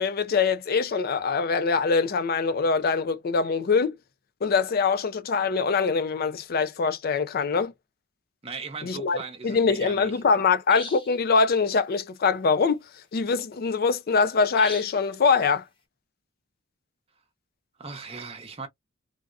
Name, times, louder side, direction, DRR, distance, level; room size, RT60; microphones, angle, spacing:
voice 1, 0.0-4.0 4.4-7.7 8.8-9.2 9.4-12.8 13.1-15.6, left 5 dB, 50° left, 0.4 m, -23 dB
voice 2, 8.4-10.4 17.8-18.7, right 4 dB, 30° right, 0.8 m, -38 dB
sound 1, 10.7-11.2 14.6-15.0, left 3 dB, 25° left, 0.8 m, -37 dB
3.5 x 2.1 x 2.4 m
head